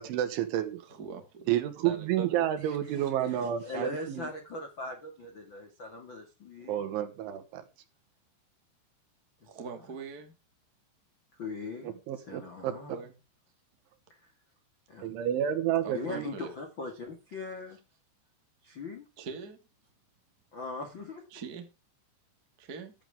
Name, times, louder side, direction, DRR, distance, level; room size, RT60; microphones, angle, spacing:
voice 1, 0.0-0.8 1.5-4.3 6.7-7.6 11.8-12.7 15.0-16.3, right 11 dB, 75° right, 3.7 m, -30 dB
voice 2, 0.9-1.5 1.8-2.4 9.4-10.3 12.9-13.1 15.8-16.5 19.2-19.6 21.3-21.7 22.6-22.9, right 4 dB, 55° right, 1.0 m, -42 dB
voice 3, 2.6-6.8 11.4-13.0 14.1-14.2 14.9-15.2 15.8-17.8 18.6-19.1 20.5-21.2, left 3 dB, 60° left, 1.2 m, -41 dB
14.5 x 11.0 x 3.6 m
omnidirectional pair, 5.9 m